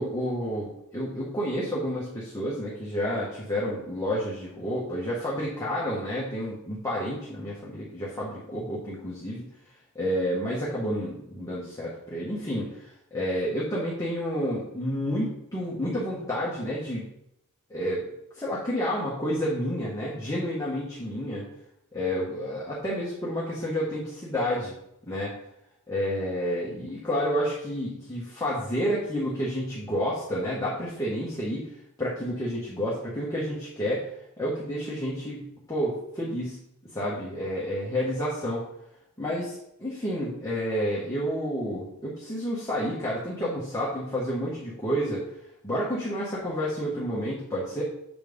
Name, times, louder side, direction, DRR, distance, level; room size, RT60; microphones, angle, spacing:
voice 1, 0.0-9.4 9.9-17.0 17.7-18.0 18.3-21.4 21.9-24.7 25.1-25.3 25.9-31.7 32.0-34.1 34.4-36.6 36.9-38.6 39.2-45.2 45.6-47.8, equal, 15° left, -6 dB, 1.5 m, -30 dB
7.2 x 4.4 x 5.4 m, 0.80 s
head